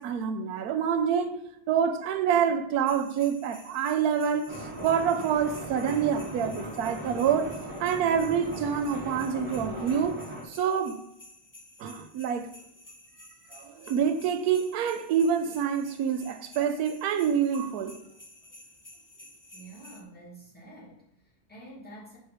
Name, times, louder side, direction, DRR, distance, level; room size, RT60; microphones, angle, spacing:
voice 1, 0.0-1.4 1.7-7.5 7.8-10.2 10.5-11.0 11.8-12.5 13.5-18.0, right 7 dB, 75° right, 1.2 m, -27 dB
sound 1, 2.9-20.0, left 1 dB, 25° left, 0.4 m, -52 dB
sound 2, 4.5-10.4, right 1 dB, 20° right, 1.4 m, -38 dB
voice 2, 19.5-22.2, right 1 dB, 5° left, 2.4 m, -48 dB
5.4 x 4.6 x 5.0 m
omnidirectional pair, 1.6 m